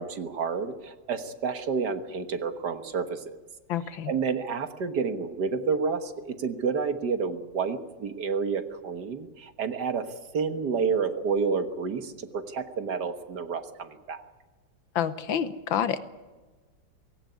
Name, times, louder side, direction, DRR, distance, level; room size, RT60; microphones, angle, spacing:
voice 1, 0.0-3.4 4.1-10.1 10.3-14.2, right 5 dB, 60° right, 9 dB, 1.8 m, -29 dB
voice 2, 3.7-4.1 15.0-16.0, left 9 dB, 80° left, 13 dB, 1.8 m, -28 dB
18.0 x 17.0 x 9.6 m, 1.3 s
omnidirectional pair, 2.1 m